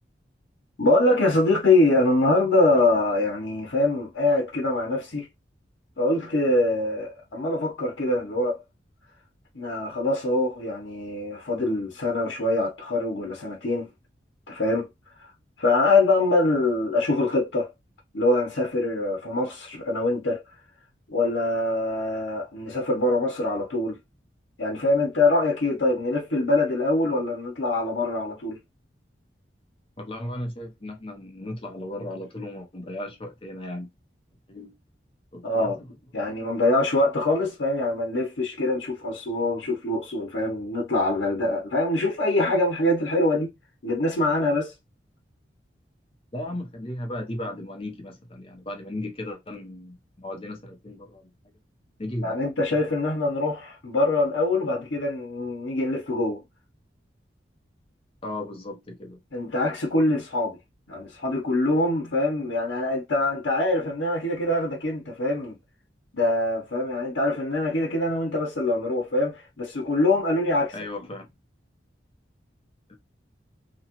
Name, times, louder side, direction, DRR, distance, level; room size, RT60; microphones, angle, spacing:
voice 1, 0.8-5.3 6.0-8.6 9.5-13.9 14.5-14.9 15.2-15.3 15.6-17.7 18.1-20.4 21.1-24.0 24.6-28.6 35.4-35.8 36.1-43.5 43.8-44.7 52.2-56.4 59.3-60.6 60.9-65.6 66.1-70.7, left 2 dB, 75° left, 0.8 m, -24 dB
voice 2, 30.0-33.9 34.5-34.7 35.3-35.7 46.3-51.3 52.0-52.5 58.2-59.2 70.7-71.3 72.9-73.0, left 1 dB, 30° left, 0.7 m, -36 dB
2.8 x 2.3 x 2.9 m
head